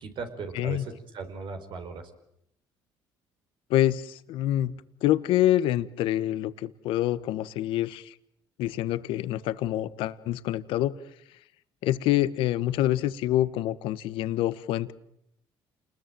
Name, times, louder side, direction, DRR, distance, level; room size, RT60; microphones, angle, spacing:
voice 1, 0.0-2.0, right 4 dB, 65° right, 6 dB, 5.1 m, -38 dB
voice 2, 0.5-0.8 3.7-4.8 5.0-8.1 8.6-10.9 11.8-14.9, left 13 dB, 80° left, 14 dB, 1.2 m, -26 dB
29.0 x 20.5 x 9.0 m, 0.77 s
supercardioid pair, 75°, 9 cm